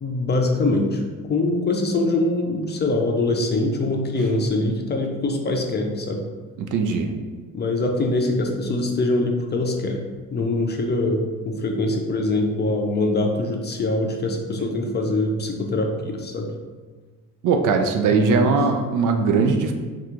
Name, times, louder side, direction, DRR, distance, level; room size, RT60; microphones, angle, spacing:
voice 1, 0.0-1.0 1.3-6.2 7.5-10.0 10.3-16.5 18.1-18.6, left 2 dB, 30° left, 2 dB, 0.5 m, -23 dB
voice 2, 6.6-7.1 17.4-19.7, right 5 dB, 60° right, 5 dB, 0.5 m, -20 dB
2.8 x 2.3 x 3.6 m, 1.4 s
supercardioid pair, 75°, 35 cm